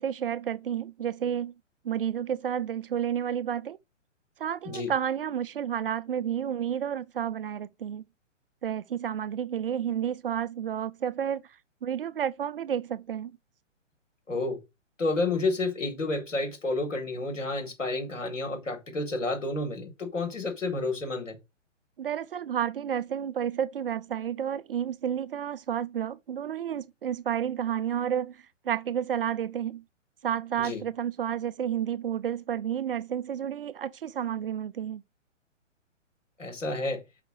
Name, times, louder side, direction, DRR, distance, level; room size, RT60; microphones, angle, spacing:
voice 1, 0.0-1.5 1.8-3.8 4.4-8.0 8.6-11.4 11.8-13.4 22.0-29.8 30.2-35.0, right 9 dB, 50° right, 0.5 m, -31 dB
voice 2, 14.3-14.6 15.0-21.4 30.6-30.8 36.4-37.0, left 2 dB, 75° left, 3.8 m, -30 dB
5.7 x 5.2 x 6.4 m
figure-of-eight pair, 125°, 38 cm